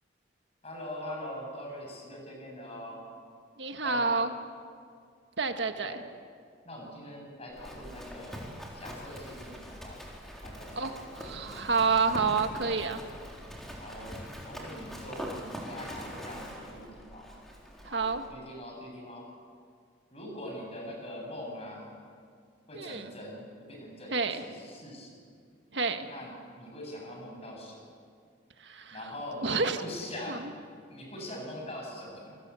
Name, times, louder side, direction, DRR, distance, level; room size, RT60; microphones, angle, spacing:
voice 1, 0.6-3.0 3.8-4.2 5.8-6.0 6.7-10.0 10.4-11.8 12.6-12.9 13.8-14.2 14.4-16.9 17.1-17.2 17.9-19.2 20.1-21.9 22.7-23.4 23.7-25.2 26.0-27.8 28.9-30.5 30.9-32.2, left 1 dB, 30° left, 0 dB, 7.6 m, -42 dB
voice 2, 3.6-4.3 5.4-6.0 10.8-13.0 17.8-18.2 22.7-23.1 24.1-24.4 25.7-26.1 28.6-29.0 29.4-29.8 30.3-30.4, right 4 dB, 65° right, 7 dB, 1.7 m, -29 dB
Livestock farm animals working animals, 7.5-18.3, equal, ahead, 3.9 m, -43 dB
27.5 x 21.0 x 8.4 m, 2.2 s
head